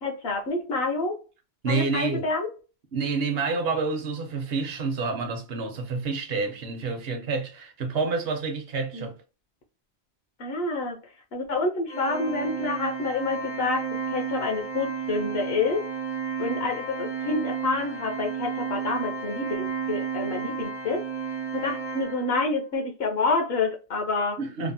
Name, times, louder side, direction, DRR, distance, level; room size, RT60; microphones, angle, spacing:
voice 1, 0.0-1.2 1.7-2.5 8.9-9.1 10.4-11.0 11.3-15.9 16.4-21.1 21.5-24.4, left 3 dB, 70° left, 0.9 m, -28 dB
voice 2, 1.6-2.3 2.9-9.2 24.4-24.7, right 4 dB, 65° right, 0.9 m, -28 dB
Organ, 11.9-22.6, right 6 dB, 30° left, 0.5 m, -32 dB
3.2 x 2.1 x 2.5 m
omnidirectional pair, 1.1 m